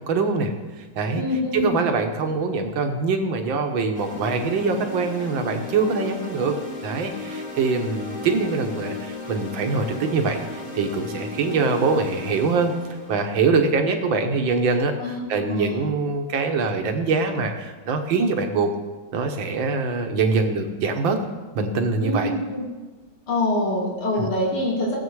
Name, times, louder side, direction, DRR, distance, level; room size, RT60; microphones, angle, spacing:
voice 1, 0.1-0.5 1.0-1.2 1.5-6.6 6.8-12.7 13.1-18.7 19.1-21.2 21.5-22.3 24.2-24.3, right 4 dB, 70° right, 5 dB, 1.9 m, -23 dB
voice 2, 1.1-1.7 15.0-15.8 22.0-22.6 23.3-25.0, left 1 dB, 85° left, -4 dB, 3.7 m, -25 dB
sound 1, 3.9-14.0, left 3 dB, 25° left, 1.3 m, -35 dB
18.0 x 7.7 x 4.7 m, 1.3 s
omnidirectional pair, 2.3 m